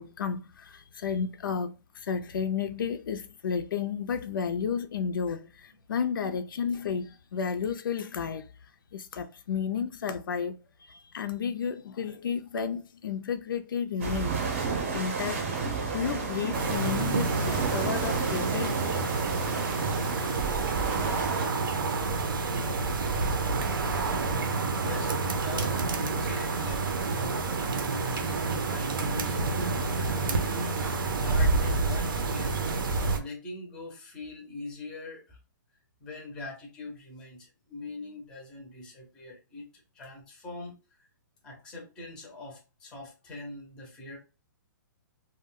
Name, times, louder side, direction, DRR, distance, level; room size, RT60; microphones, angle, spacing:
voice 1, 0.0-8.5 8.9-14.4 14.9-19.5, left 6 dB, 85° left, 0.4 m, -32 dB
sound 1, 14.0-21.5, right 4 dB, 35° right, 0.6 m, -32 dB
sound 2, 16.5-33.2, right 3 dB, 80° right, 0.6 m, -29 dB
voice 2, 24.8-32.8 33.1-35.4 36.0-41.1 41.4-44.2, left 2 dB, 5° left, 0.5 m, -43 dB
2.3 x 2.1 x 3.5 m
hypercardioid pair, 175°, 11 cm